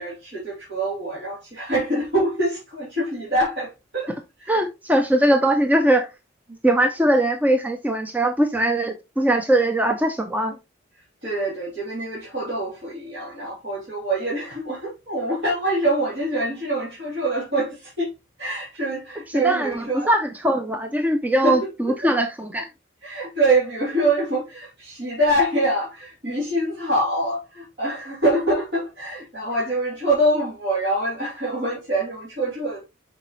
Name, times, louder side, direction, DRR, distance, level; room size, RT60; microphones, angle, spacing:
voice 1, 0.0-4.6 6.5-6.6 11.2-18.1 18.4-20.1 21.4-21.9 23.0-32.8, right 1 dB, 60° right, 2.9 m, -25 dB
voice 2, 4.5-6.1 6.6-10.6 19.3-22.7, right 1 dB, 10° right, 0.5 m, -21 dB
7.0 x 4.9 x 3.0 m
head